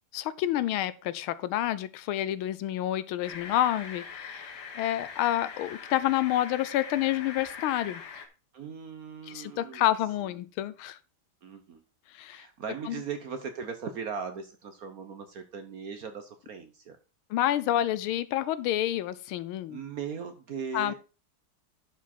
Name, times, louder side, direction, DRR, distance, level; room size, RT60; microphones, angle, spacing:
voice 1, 0.1-8.0 9.3-11.0 12.1-12.5 12.9-13.0 17.3-19.8 20.7-20.9, left 13 dB, 80° left, 16 dB, 1.5 m, -29 dB
sound 1, 3.2-8.3, left 6 dB, 55° left, 1.5 m, -42 dB
voice 2, 8.5-9.9 10.2-10.4 11.4-11.8 12.3-17.0 19.7-20.9, right 6 dB, 55° right, 8 dB, 1.1 m, -38 dB
11.0 x 5.0 x 4.2 m, 0.33 s
omnidirectional pair, 2.3 m